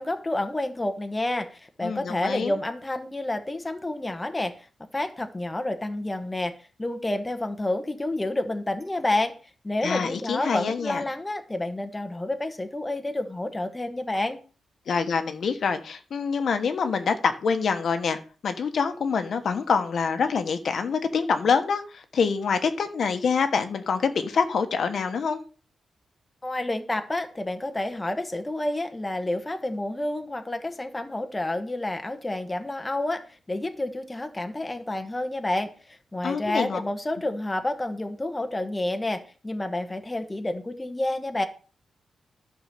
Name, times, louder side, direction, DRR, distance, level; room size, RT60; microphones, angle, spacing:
voice 1, 0.0-4.7 4.9-9.3 9.6-14.4 26.4-41.5, left 1 dB, 15° left, 7 dB, 1.1 m, -29 dB
voice 2, 1.8-2.5 9.8-11.0 14.9-18.2 18.4-25.4 36.2-36.8, left 5 dB, 60° left, 8 dB, 1.2 m, -26 dB
11.5 x 4.9 x 6.7 m, 0.37 s
wide cardioid pair, 115°, 0 cm